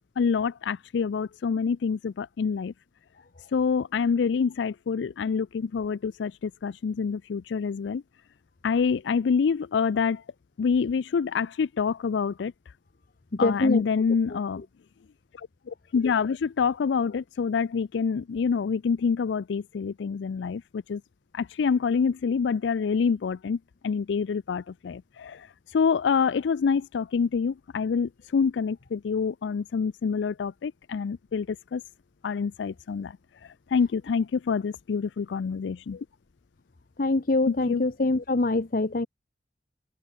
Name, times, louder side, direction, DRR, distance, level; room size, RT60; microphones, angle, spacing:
voice 1, 0.2-2.7 3.5-8.0 8.6-10.2 10.6-12.5 13.4-14.6 15.3-21.0 21.3-31.8 32.2-36.1 37.5-37.8, left 5 dB, 85° left, 0.4 m, -27 dB
voice 2, 13.3-13.8 14.3-14.4 37.0-39.1, left 2 dB, 50° left, 0.8 m, -24 dB
open air
head